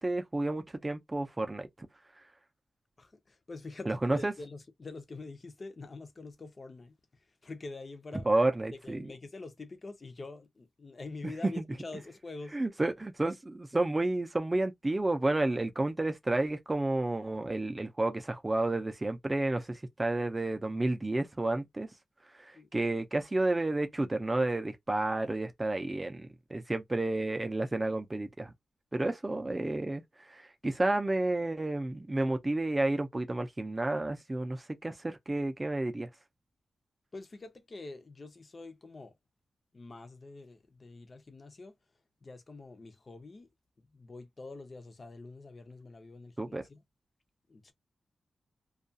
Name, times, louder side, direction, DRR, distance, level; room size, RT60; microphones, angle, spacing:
voice 1, 0.0-1.9 3.9-4.3 8.3-9.1 11.2-11.6 12.5-21.9 22.3-28.5 28.9-36.1 46.4-46.6, right 2 dB, 20° right, 0.5 m, -31 dB
voice 2, 3.0-6.9 7.4-8.3 8.8-12.6 22.5-22.7 37.1-39.1 39.7-41.8 42.2-43.5 43.8-46.8 47.5-47.7, left 3 dB, 35° left, 0.6 m, -46 dB
2.3 x 2.3 x 2.6 m
wide cardioid pair, 140°, 0 cm